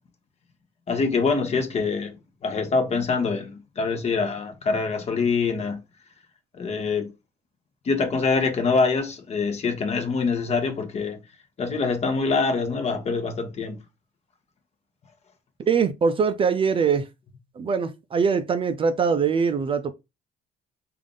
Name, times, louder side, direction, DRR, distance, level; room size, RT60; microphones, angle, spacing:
voice 1, 0.9-2.2 2.4-5.8 6.5-7.1 7.8-11.2 11.6-13.8, left 4 dB, 40° left, 0.9 m, -24 dB
voice 2, 15.7-17.1 17.6-19.9, right 6 dB, 30° right, 0.4 m, -22 dB
3.5 x 2.5 x 3.6 m
cardioid pair, 110°, 17 cm